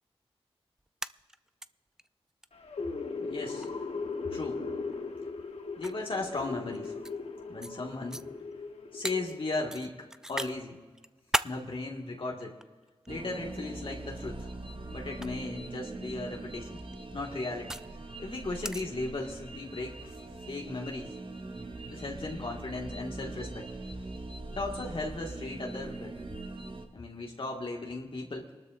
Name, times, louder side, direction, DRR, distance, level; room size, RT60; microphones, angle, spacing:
sound 1, 0.8-1.7 2.0-2.1 2.4-2.5 3.6-3.8 4.9-5.0 5.8-7.2 7.6-7.8 8.1-8.2 9.0-9.2 9.7-10.5 10.9-11.6 12.4-13.1 14.2-14.4 15.1-15.3 16.6-17.9 18.6-18.8, right 1 dB, 5° right, 0.3 m, -35 dB
sound 2, 2.5-9.8, left 4 dB, 75° left, 1.1 m, -38 dB
voice 1, 3.2-3.7 4.3-4.6 5.8-6.9 7.5-8.2 8.9-10.8 11.4-12.6 13.1-14.5 14.9-16.8 17.1-17.7 18.2-20.1 20.5-21.1 21.9-23.7 24.5-26.2 26.9-28.5, left 2 dB, 55° left, 0 dB, 1.8 m, -36 dB
sound 3, 13.1-26.9, right 2 dB, 55° right, 1.3 m, -42 dB
24.0 x 12.5 x 2.5 m, 1.4 s
cardioid pair, 45°, 11 cm